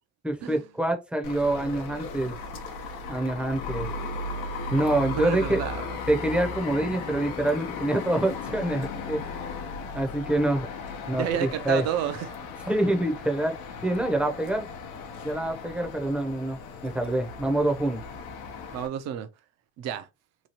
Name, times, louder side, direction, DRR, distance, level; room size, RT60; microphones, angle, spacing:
voice 1, 0.2-2.4 3.1-3.9 4.7-5.6 6.1-9.2 9.9-10.7 11.1-11.8 12.7-13.6 13.8-14.7 15.2-18.0, right 1 dB, 5° right, 0.6 m, -26 dB
sound 1, 1.2-18.9, left 4 dB, 85° left, 0.8 m, -36 dB
voice 2, 5.2-6.0 11.1-12.4 18.7-19.3 19.8-20.1, right 10 dB, 50° right, 0.6 m, -30 dB
3.0 x 2.3 x 2.8 m
supercardioid pair, 110°, 33 cm